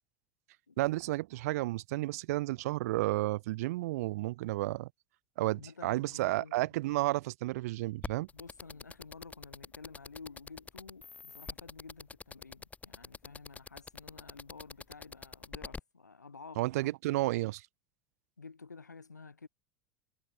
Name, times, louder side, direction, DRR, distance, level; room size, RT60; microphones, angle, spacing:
voice 1, 0.8-4.9 5.4-8.3 16.6-17.6, right 18 dB, 65° right, 0.5 m, -32 dB
voice 2, 5.5-6.7 8.3-16.9 18.4-19.5, left 4 dB, 90° left, 1.0 m, -51 dB
sound 1, 8.0-15.8, left 4 dB, 15° left, 0.8 m, -44 dB
figure-of-eight pair, 80°, 9 cm